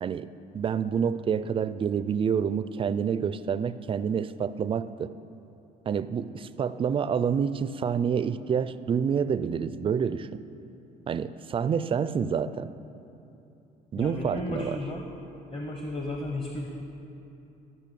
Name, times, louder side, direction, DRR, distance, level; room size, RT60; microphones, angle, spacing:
voice 1, 0.5-5.1 5.9-10.4 11.1-12.7 13.9-14.8, right 7 dB, 30° right, 14 dB, 0.4 m, -28 dB
voice 2, 14.0-15.1 15.5-16.7, left 2 dB, 30° left, 1 dB, 1.1 m, -33 dB
13.5 x 6.2 x 6.9 m, 2.9 s
cardioid pair, 110°, 17 cm